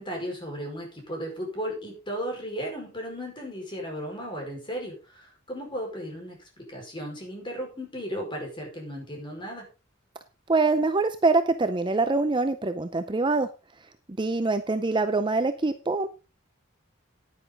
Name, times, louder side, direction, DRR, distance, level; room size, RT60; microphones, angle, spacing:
voice 1, 0.0-9.7, equal, 25° left, 1 dB, 5.1 m, -35 dB
voice 2, 10.5-13.5 14.2-16.1, right 3 dB, 25° right, 9 dB, 0.6 m, -24 dB
10.0 x 10.0 x 3.9 m, 0.31 s
head